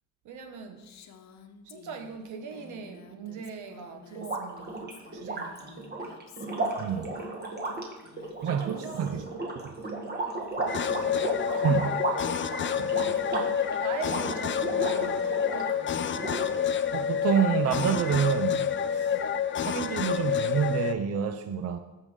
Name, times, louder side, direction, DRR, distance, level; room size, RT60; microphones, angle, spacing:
voice 1, 0.2-0.9 1.6-6.0 8.4-9.3 10.7-11.4 13.8-16.2 19.1-19.3, right 5 dB, 80° right, 1.2 m, -42 dB
Female speech woman speaking, 0.8-7.1 8.0-9.3, left 6 dB, 65° left, 0.9 m, -52 dB
sound 1, 4.2-15.8 16.1-16.9, right 2 dB, 35° right, 1.7 m, -34 dB
voice 2, 6.8-7.1 8.4-9.2 9.6-9.9 11.6-12.0 12.8-12.9 16.9-19.2 19.6-21.8, right 8 dB, 55° right, 0.6 m, -28 dB
sound 2, 10.7-21.0, left 8 dB, 40° left, 0.5 m, -28 dB
13.5 x 5.4 x 3.6 m
cardioid pair, 90°, 30 cm